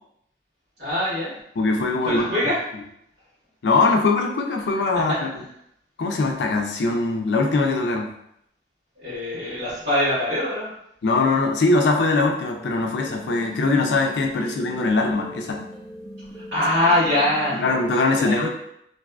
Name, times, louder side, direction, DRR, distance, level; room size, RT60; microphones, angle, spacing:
voice 1, 0.8-1.3 2.0-2.6 9.0-10.7 16.3-17.6 18.2-18.5, left 1 dB, 60° right, -13 dB, 1.2 m, -23 dB
voice 2, 1.6-2.3 3.6-5.1 6.0-8.1 11.0-15.7 17.5-18.5, left 3 dB, 70° left, 2 dB, 0.4 m, -21 dB
sound 1, 12.5-17.8, equal, ahead, 0.4 m, -41 dB
2.6 x 2.4 x 2.2 m, 0.74 s
head